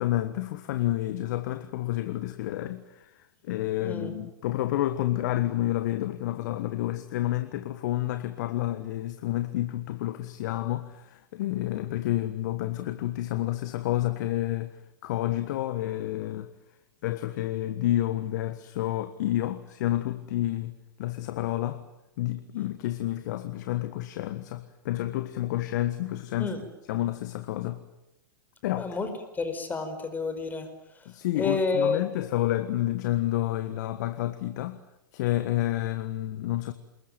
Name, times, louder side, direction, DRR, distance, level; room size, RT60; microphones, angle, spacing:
voice 1, 0.0-14.8 15.0-16.5 17.0-21.8 22.2-26.5 26.9-27.8 28.6-29.0 31.0-34.8 35.1-36.7, left 14 dB, 55° left, 1.5 m, -29 dB
voice 2, 3.8-4.1 26.4-26.6 28.8-29.1 29.4-30.7 31.4-32.0, left 4 dB, 15° left, 5.1 m, -29 dB
28.0 x 21.0 x 9.1 m
hypercardioid pair, 105°, 11 cm